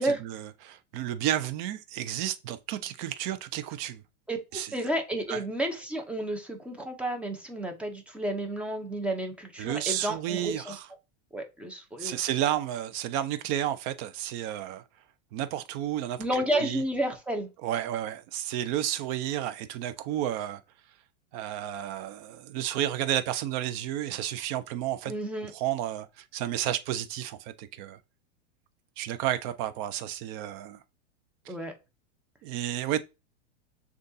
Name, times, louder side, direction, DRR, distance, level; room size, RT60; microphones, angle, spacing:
voice 1, 0.0-4.0 4.5-4.7 5.3-5.4 9.6-10.9 12.0-14.8 15.3-16.8 17.6-20.6 21.3-25.1 25.5-26.1 26.3-28.0 29.0-30.8 32.4-33.0, right 12 dB, 40° right, 0.6 m, -31 dB
voice 2, 4.7-10.8 11.3-12.2 16.2-17.5 25.0-25.5 31.5-31.7, right 1 dB, 5° right, 0.7 m, -31 dB
6.3 x 2.5 x 2.7 m
hypercardioid pair, 130°, 36 cm